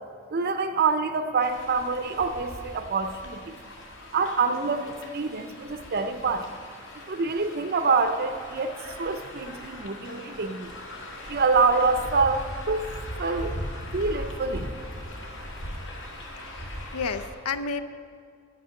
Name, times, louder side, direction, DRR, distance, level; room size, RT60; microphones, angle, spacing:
voice 1, 0.3-3.6 4.1-6.5 7.1-10.7 11.3-12.9 13.2-13.6 13.9-14.7, right 4 dB, 45° right, 8 dB, 0.5 m, -26 dB
sound 1, 1.4-17.3, left 1 dB, 60° left, 1.8 m, -39 dB
voice 2, 16.5-17.8, left 5 dB, 80° left, 12 dB, 0.6 m, -31 dB
10.0 x 9.4 x 6.4 m, 2.2 s
head